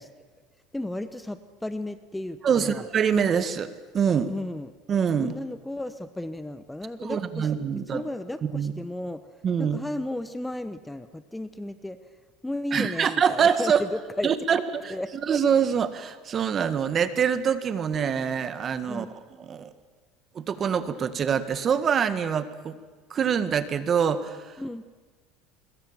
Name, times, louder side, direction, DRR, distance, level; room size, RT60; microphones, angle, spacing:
voice 1, 0.7-2.9 4.3-4.7 5.2-7.5 7.9-9.3 9.6-12.0 12.4-14.3 14.9-15.1 18.9-19.1 24.6-24.8, left 1 dB, 5° left, 12 dB, 1.0 m, -34 dB
voice 2, 2.4-4.3 4.9-5.4 7.0-8.0 8.4-8.7 9.4-9.8 12.7-13.8 14.2-14.9 15.3-19.1 19.4-19.7 20.4-22.7 23.1-24.4, right 7 dB, 35° right, 12 dB, 1.7 m, -25 dB
25.0 x 21.5 x 7.4 m, 1.4 s
supercardioid pair, 120°, 0 cm